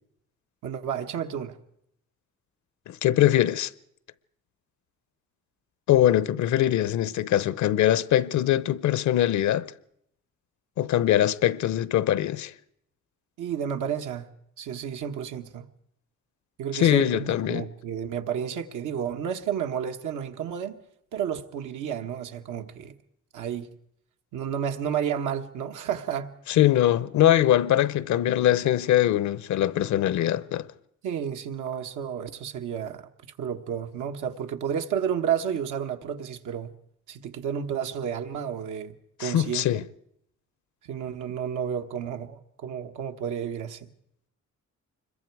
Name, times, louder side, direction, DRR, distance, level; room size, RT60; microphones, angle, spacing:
voice 1, 0.6-1.6 13.4-14.3 14.6-15.7 16.6-20.8 21.1-22.9 23.3-23.7 24.3-26.3 31.0-33.1 33.4-36.7 37.1-39.8 40.8-43.9, right 8 dB, 80° right, 1.4 m, -31 dB
voice 2, 2.9-3.7 5.9-9.7 10.8-12.5 16.7-17.7 26.5-30.7 39.2-39.8, left 12 dB, 70° left, 0.8 m, -22 dB
25.5 x 22.0 x 4.7 m
cardioid pair, 90°, 30 cm